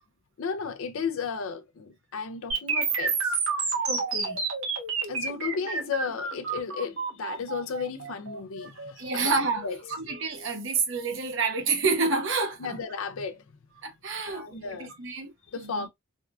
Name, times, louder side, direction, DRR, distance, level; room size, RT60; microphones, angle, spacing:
voice 1, 0.4-3.4 5.0-9.3 9.6-9.8 12.6-13.4 14.3-14.9 15.5-15.9, left 5 dB, 80° left, 0.5 m, -34 dB
sound 1, 2.5-10.5, right 4 dB, 85° right, 1.3 m, -30 dB
voice 2, 3.8-4.4 8.6-12.8 13.8-15.3 15.6-15.9, right 4 dB, 65° right, 0.9 m, -29 dB
3.6 x 2.3 x 2.3 m
head